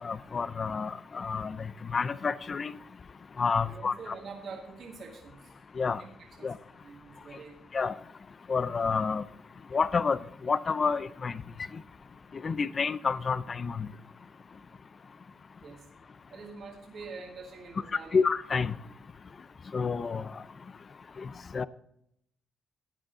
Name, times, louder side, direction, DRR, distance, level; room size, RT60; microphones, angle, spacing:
voice 1, 0.0-2.7 3.4-4.1 5.8-6.0 6.4-6.6 7.7-7.9 8.5-9.2 9.7-11.4 12.3-13.9 18.1-18.8 19.7-20.3 21.2-21.7, left 5 dB, 40° left, 0.5 m, -29 dB
voice 2, 3.6-5.5 5.9-6.1 6.4-7.6 15.6-15.9 16.3-18.2, right 4 dB, 60° right, 1.8 m, -45 dB
13.0 x 8.8 x 3.9 m
cardioid pair, 90°, 0 cm